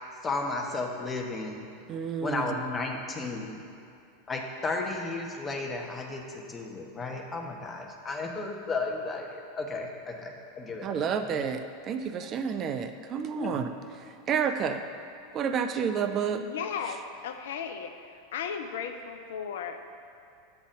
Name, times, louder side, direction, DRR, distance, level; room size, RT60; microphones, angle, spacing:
voice 1, 0.2-1.7 2.2-3.6 4.3-6.2 6.5-11.4 13.4-13.6, left 3 dB, 20° left, 1 dB, 0.9 m, -34 dB
voice 2, 1.9-2.6 10.8-13.7 14.3-14.8 15.3-16.4 16.8-17.0, right 7 dB, 35° right, 7 dB, 0.4 m, -30 dB
voice 3, 16.4-17.9 18.3-19.8, left 7 dB, 60° left, 7 dB, 0.4 m, -35 dB
7.8 x 4.0 x 6.0 m, 2.6 s
figure-of-eight pair, 85°, 0 cm